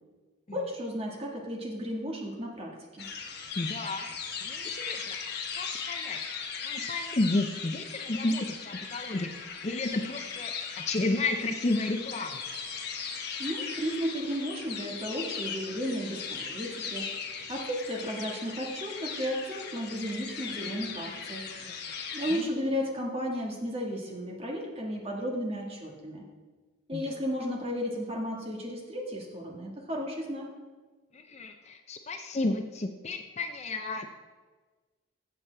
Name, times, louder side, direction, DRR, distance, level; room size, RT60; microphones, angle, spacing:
voice 1, 0.5-3.0 13.4-17.1 17.5-21.4 22.1-26.2 26.9-30.5, equal, 30° right, -1 dB, 1.6 m, -34 dB
sound 1, 3.0-22.4, left 6 dB, 50° left, 1.1 m, -38 dB
voice 2, 3.6-4.1 4.4-10.5 10.9-12.4 21.5-21.8 22.3-22.4 26.9-27.0 31.1-34.1, left 2 dB, 35° left, 6 dB, 0.5 m, -32 dB
14.0 x 7.3 x 3.4 m, 1.3 s
head